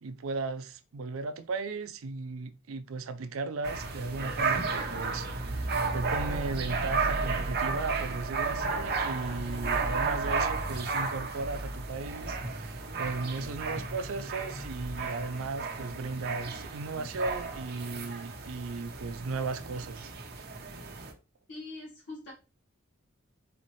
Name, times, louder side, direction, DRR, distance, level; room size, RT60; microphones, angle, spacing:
voice 1, 0.0-20.1, right 3 dB, 80° right, 0.5 m, -36 dB
sound 1, 3.6-21.1, right 4 dB, 50° right, 0.8 m, -33 dB
voice 2, 21.5-22.3, left 2 dB, 55° left, 1.3 m, -42 dB
4.1 x 4.1 x 3.1 m
head